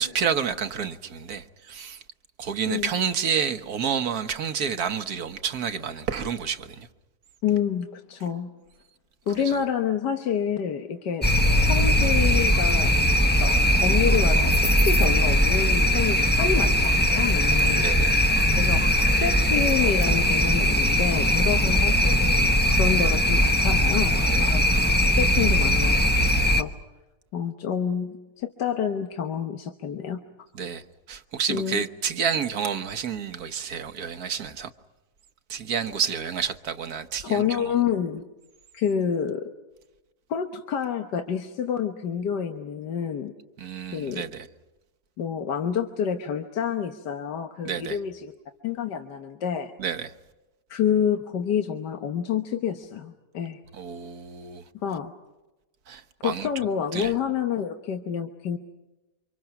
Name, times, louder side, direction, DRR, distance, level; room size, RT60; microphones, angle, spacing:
voice 1, 0.0-2.0 2.4-6.9 9.5-9.6 17.8-18.3 24.3-24.5 30.6-30.8 31.1-34.7 35.5-37.5 43.6-44.5 47.6-48.0 49.8-50.1 53.7-54.6 55.9-56.5 56.9-57.1, right 7 dB, 65° right, 1.5 m, -29 dB
voice 2, 7.4-8.5 9.3-11.3 11.6-12.9 13.4-13.5 13.8-17.8 18.6-22.4 22.7-26.7 27.3-30.2 31.5-31.8 37.2-38.2 38.7-39.5 40.3-43.3 43.9-44.3 45.2-48.3 48.6-49.7 50.7-53.6 54.8-55.1 56.2-58.6, left 8 dB, 85° left, 1.7 m, -28 dB
sound 1, 11.2-26.6, equal, 10° left, 0.8 m, -20 dB
29.0 x 25.5 x 5.9 m
omnidirectional pair, 1.8 m